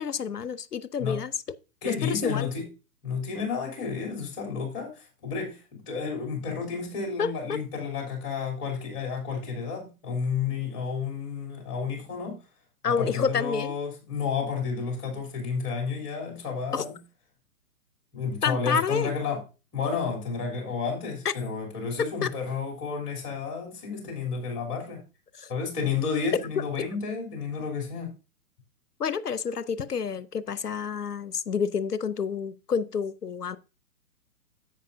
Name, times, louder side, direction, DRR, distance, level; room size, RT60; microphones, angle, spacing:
voice 1, 0.0-1.3 1.8-2.5 7.2-7.6 12.8-13.7 16.7-16.8 18.4-19.1 21.2-21.3 22.0-22.3 25.4-25.5 29.0-33.6, left 6 dB, 80° left, 0.8 m, -29 dB
voice 2, 1.8-2.7 3.0-12.4 12.8-16.9 18.1-19.4 19.7-25.0 25.5-28.1, left 5 dB, 30° left, 3.2 m, -31 dB
10.5 x 8.1 x 2.6 m
figure-of-eight pair, 120°, 46 cm